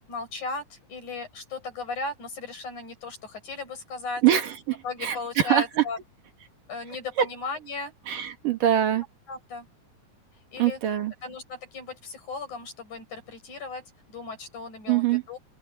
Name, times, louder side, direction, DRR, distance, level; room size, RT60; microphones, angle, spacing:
voice 1, 0.1-4.2 4.8-6.0 6.7-7.9 9.3-9.7 10.5-10.8 11.2-15.4, left 3 dB, 55° left, 8.9 m, -36 dB
voice 2, 4.2-5.8 8.1-9.0 10.6-11.1 14.9-15.2, right 11 dB, 70° right, 3.5 m, -24 dB
open air
omnidirectional pair, 4.0 m